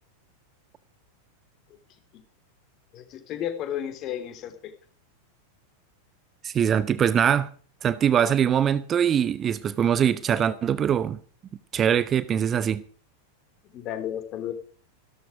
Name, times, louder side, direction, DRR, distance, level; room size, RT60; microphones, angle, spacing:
voice 1, 2.9-4.5 13.7-14.5, left 10 dB, 35° left, 3.5 m, -32 dB
voice 2, 6.4-7.5 7.8-11.2 11.7-12.8, right 8 dB, 25° right, 0.7 m, -22 dB
15.0 x 13.0 x 5.1 m
figure-of-eight pair, 90°, 0 cm